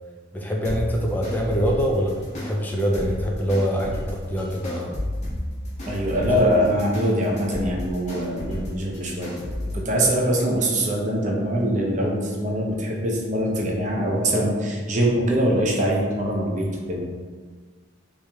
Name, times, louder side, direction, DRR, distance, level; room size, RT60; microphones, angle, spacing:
voice 1, 0.3-5.0 6.1-6.3, equal, 10° left, -1 dB, 0.4 m, -24 dB
sound 1, 0.6-9.8, left 1 dB, 35° left, 1.0 m, -33 dB
voice 2, 5.9-9.3 9.7-17.1, equal, 40° right, -1 dB, 0.6 m, -23 dB
3.1 x 3.1 x 3.4 m, 1.5 s
head